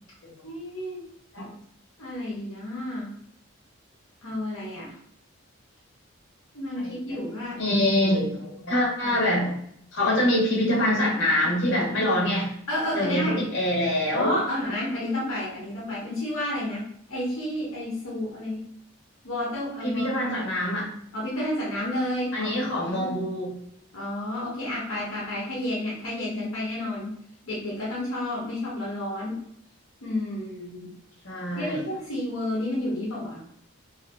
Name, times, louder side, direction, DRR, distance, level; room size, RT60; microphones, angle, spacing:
voice 1, 0.4-1.0 2.0-3.1 4.2-4.9 6.5-7.6 8.3-8.4 9.0-9.1 10.0-10.2 12.7-13.5 14.1-18.7 19.2-20.1 21.1-22.5 23.0-23.3 23.9-27.1 27.5-29.4 30.0-30.9 31.5-33.4, left 1 dB, 80° left, -6 dB, 1.0 m, -31 dB
voice 2, 6.8-7.2 7.6-9.5 9.9-12.5 12.9-14.3 19.8-21.0 22.3-23.5 31.2-31.8, left 1 dB, 60° left, -5 dB, 1.3 m, -25 dB
2.8 x 2.8 x 2.6 m, 0.66 s
head